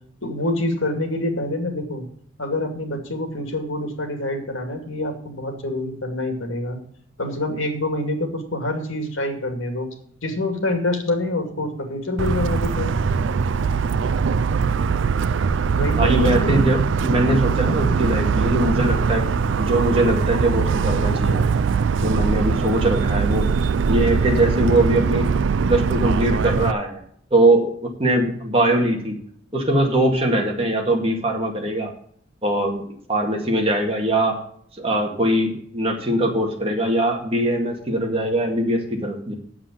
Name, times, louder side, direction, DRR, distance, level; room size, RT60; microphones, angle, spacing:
voice 1, 0.2-2.0 2.4-6.8 7.2-9.9 10.2-12.9 15.8-16.7, left 1 dB, 90° left, 4 dB, 2.4 m, -26 dB
Motor vehicle (road) / Siren, 12.2-26.7, right 5 dB, 70° right, 0.4 m, -21 dB
voice 2, 15.9-19.3 19.6-21.5 22.0-23.5 23.9-25.3 25.7-27.0 27.3-29.1 29.5-31.9 32.4-34.4 34.8-39.3, right 1 dB, 30° right, 1 dB, 2.0 m, -21 dB
8.8 x 7.4 x 7.0 m, 0.63 s
head